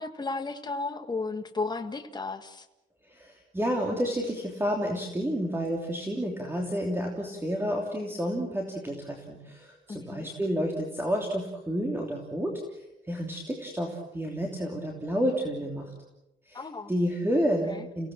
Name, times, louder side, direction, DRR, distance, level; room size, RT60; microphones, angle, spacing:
voice 1, 0.0-2.6 9.9-10.3 16.5-16.9 17.7-17.9, left 3 dB, 20° left, 6 dB, 1.7 m, -34 dB
voice 2, 3.1-12.5 13.1-15.9 16.5-18.1, equal, 10° right, 1 dB, 3.1 m, -30 dB
29.5 x 17.5 x 7.4 m, 0.93 s
cardioid pair, 135°, 20 cm